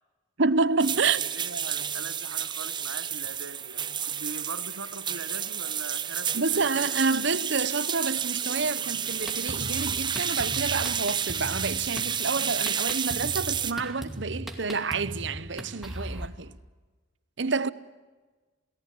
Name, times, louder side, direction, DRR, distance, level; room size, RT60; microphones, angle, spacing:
voice 1, 0.4-1.2 6.3-16.5 17.4-17.7, right 4 dB, 60° right, 0.9 m, -28 dB
sound 1, 0.8-13.7, right 8 dB, 20° right, 0.8 m, -31 dB
voice 2, 1.0-6.9, right 4 dB, 90° right, 1.7 m, -41 dB
Drum kit, 9.0-16.3, right 1 dB, ahead, 2.3 m, -39 dB
28.5 x 18.5 x 9.8 m
head